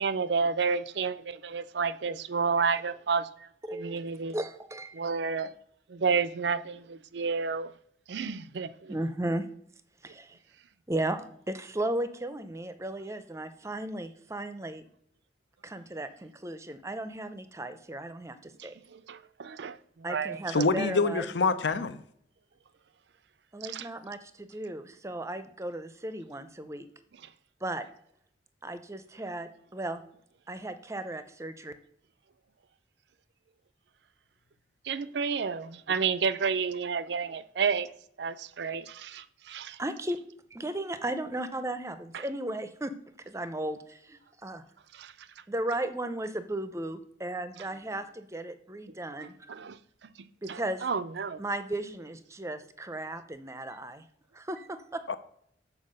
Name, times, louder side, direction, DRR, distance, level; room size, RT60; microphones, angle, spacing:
voice 1, 0.0-4.4 4.9-5.5 5.9-7.7 8.1-8.9 18.6-20.4 23.6-23.9 34.8-37.9 38.2-39.8 42.1-42.2 44.9-45.3 49.5-50.1 50.5-51.4, right 5 dB, 65° right, 0.5 m, -31 dB
voice 2, 3.7-4.0 4.3-5.0 8.9-9.5 10.0-10.4 10.9-14.9 15.6-18.7 20.0-21.3 23.5-26.9 27.6-27.9 28.6-30.0 30.5-31.7 39.8-40.2 40.5-42.9 43.3-44.6 45.5-49.6 50.4-50.9 51.4-54.0 54.3-55.0, right 1 dB, 15° right, 0.6 m, -35 dB
voice 3, 20.5-22.0 55.1-55.2, left 4 dB, 75° left, 0.7 m, -26 dB
7.4 x 4.6 x 6.5 m
head